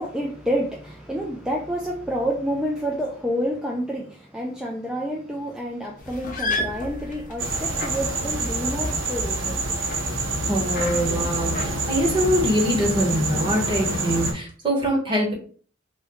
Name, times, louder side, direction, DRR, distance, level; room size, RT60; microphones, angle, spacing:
voice 1, 0.0-9.7, equal, 5° right, -1 dB, 0.3 m, -29 dB
sound 1, 6.0-11.8, left 2 dB, 40° left, 0.6 m, -33 dB
sound 2, 7.4-14.3, right 2 dB, 75° right, 0.8 m, -26 dB
voice 2, 10.5-15.3, equal, 25° right, -1 dB, 1.0 m, -23 dB
3.0 x 2.2 x 3.4 m, 0.43 s
head